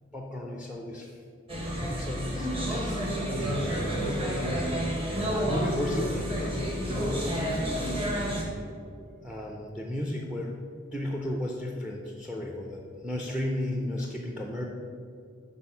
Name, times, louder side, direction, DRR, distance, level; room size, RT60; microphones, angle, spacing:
voice 1, 0.1-1.1 1.8-4.7 5.3-7.8 9.2-10.6 10.9-14.7, left 1 dB, 5° right, 0 dB, 0.4 m, -34 dB
sound 1, 1.5-8.4, equal, 25° right, 1.1 m, -30 dB
6.1 x 4.2 x 5.5 m, 2.3 s
head